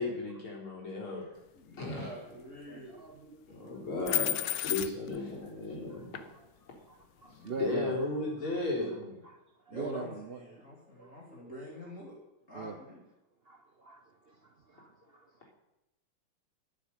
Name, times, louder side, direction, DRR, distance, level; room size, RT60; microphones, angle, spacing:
voice 1, 0.0-1.2 1.8-2.1 3.5-6.2 6.6-6.7 7.6-8.9, left 2 dB, 85° left, -2 dB, 4.9 m, -35 dB
voice 2, 1.0-3.0 7.2-7.5 8.7-9.2 9.7-12.2 12.5-13.0, left 1 dB, 35° left, -4 dB, 3.5 m, -46 dB
voice 3, 2.6-4.0 5.9-6.1 6.3-6.4 6.9-8.0 8.4-8.6 9.2-9.4 9.7-11.5 12.5-12.8 13.5-15.5, right 5 dB, 75° right, 7 dB, 0.5 m, -44 dB
sound 1, 4.1-5.2 6.1-6.2, left 12 dB, 65° left, 1.2 m, -31 dB
13.5 x 8.0 x 8.4 m, 0.92 s
omnidirectional pair, 2.3 m